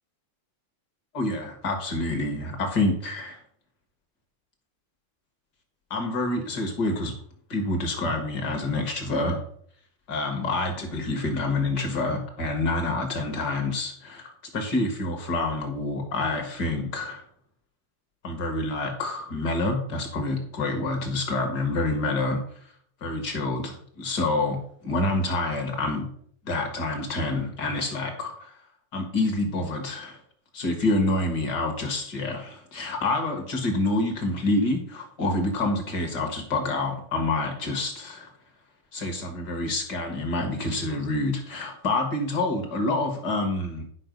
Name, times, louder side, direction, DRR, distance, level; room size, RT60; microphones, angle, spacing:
voice 1, 1.1-3.4 5.9-7.1 7.5-9.4 10.1-17.2 18.2-22.4 23.0-26.1 26.4-28.5 28.9-30.2 30.5-38.3 38.9-43.8, left 2 dB, 50° left, 4 dB, 1.2 m, -27 dB
10.5 x 5.5 x 5.2 m, 0.62 s
omnidirectional pair, 4.0 m